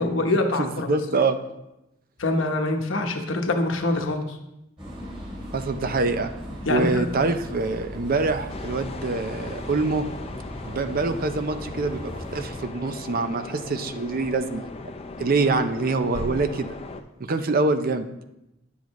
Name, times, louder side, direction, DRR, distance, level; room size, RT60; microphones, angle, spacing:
voice 1, 0.0-1.0 2.2-4.4 6.6-7.1, left 2 dB, 75° left, 4 dB, 1.0 m, -24 dB
voice 2, 0.6-1.4 5.5-6.3 6.7-10.1 10.6-14.7 15.2-16.7 17.2-18.1, right 3 dB, 50° right, 9 dB, 0.5 m, -25 dB
sound 1, 4.8-12.7, equal, 30° right, 3.2 m, -38 dB
sound 2, 8.5-17.0, left 2 dB, 30° left, 0.5 m, -38 dB
10.5 x 7.2 x 3.1 m, 0.90 s
head